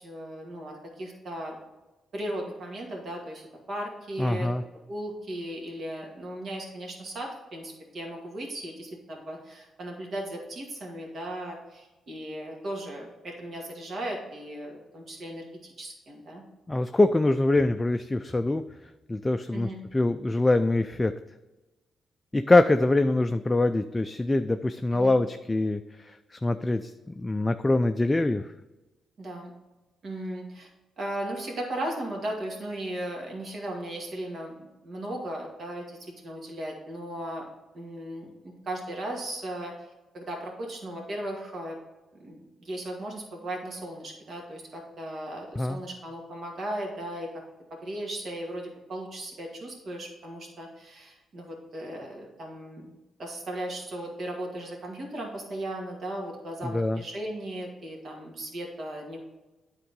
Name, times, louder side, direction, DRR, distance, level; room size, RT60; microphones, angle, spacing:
voice 1, 0.0-1.6 2.1-4.5 4.9-16.4 19.5-19.8 24.9-25.2 29.2-29.5 30.0-30.7 31.0-37.5 37.7-39.9 40.1-41.8 42.2-47.3 47.8-52.9 53.2-59.2, right 1 dB, 55° right, 0 dB, 2.1 m, -37 dB
voice 2, 4.2-4.6 16.7-18.6 19.1-21.1 22.3-28.5 45.6-45.8 56.6-57.0, left 2 dB, 20° left, 8 dB, 0.4 m, -24 dB
9.1 x 3.7 x 5.3 m, 1.1 s
supercardioid pair, 55°, 0 cm